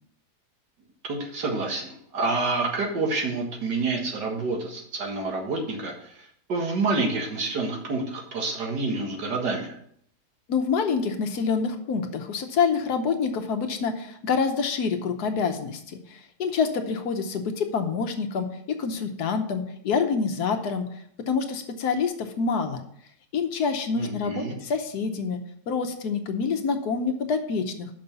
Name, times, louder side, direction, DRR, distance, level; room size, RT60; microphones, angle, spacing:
voice 1, 1.1-6.1 6.5-9.7 24.0-24.5, right 3 dB, 85° right, 0 dB, 2.2 m, -28 dB
voice 2, 10.5-20.9 21.3-22.8 23.3-25.4 25.7-27.9, left 5 dB, 70° left, 6 dB, 1.4 m, -27 dB
6.3 x 5.4 x 6.8 m, 0.68 s
omnidirectional pair, 1.8 m